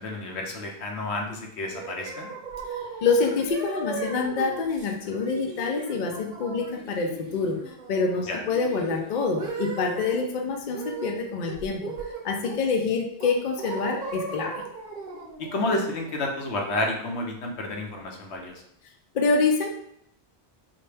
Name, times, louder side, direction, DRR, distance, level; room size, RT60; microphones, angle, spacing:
voice 1, 0.0-2.3 8.3-8.4 15.5-18.5, left 2 dB, 80° left, 1 dB, 1.0 m, -30 dB
sound 1, 1.7-10.3 10.7-11.2 11.5-12.7 13.2-16.9, right 4 dB, 50° right, 0.8 m, -37 dB
voice 2, 2.7-7.6 7.9-11.8 12.2-14.5 19.1-19.7, left 4 dB, 55° left, 2 dB, 0.6 m, -26 dB
4.2 x 2.2 x 3.3 m, 0.72 s
omnidirectional pair, 1.1 m